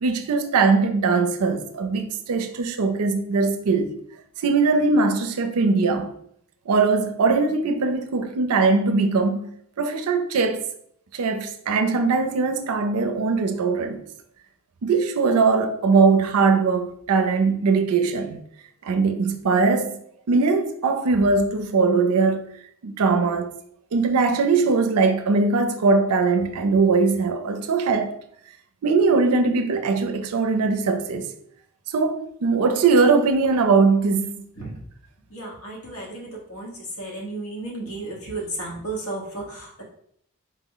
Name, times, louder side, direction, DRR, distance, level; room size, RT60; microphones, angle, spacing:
voice 1, 0.0-3.9 4.4-6.1 6.7-9.5 9.8-10.6 11.1-14.0 14.8-18.4 18.8-20.0 20.3-22.4 22.8-23.5 23.9-28.2 28.8-31.3 31.9-34.3, right 4 dB, 80° right, 0.4 m, -21 dB
voice 2, 35.3-39.8, right 2 dB, 65° left, 1.1 m, -33 dB
4.0 x 2.0 x 3.8 m
head